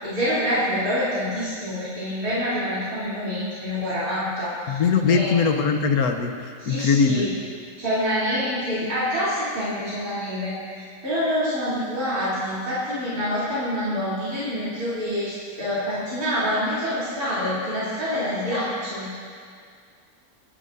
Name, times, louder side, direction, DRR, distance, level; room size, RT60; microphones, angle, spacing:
voice 1, 0.0-4.8 5.1-5.5 6.6-7.3 7.8-19.2, equal, 75° right, -11 dB, 3.8 m, -26 dB
voice 2, 4.7-7.2, left 5 dB, 75° left, 5 dB, 1.4 m, -21 dB
23.5 x 11.0 x 2.7 m, 2.1 s
omnidirectional pair, 1.6 m